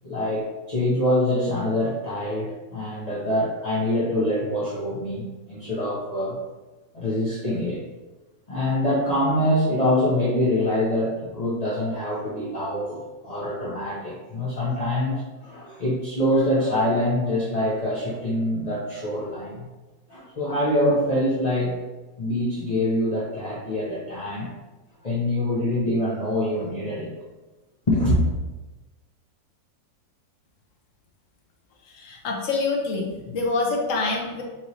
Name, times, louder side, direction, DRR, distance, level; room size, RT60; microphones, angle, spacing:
voice 1, 0.0-6.4 6.9-7.8 8.5-19.7 20.1-21.8 22.2-24.5 25.0-27.1 27.9-28.2, left 1 dB, 45° left, -9 dB, 0.5 m, -25 dB
voice 2, 31.9-34.4, left 3 dB, 60° left, -1 dB, 0.9 m, -26 dB
5.6 x 3.0 x 2.7 m, 1.2 s
omnidirectional pair, 1.9 m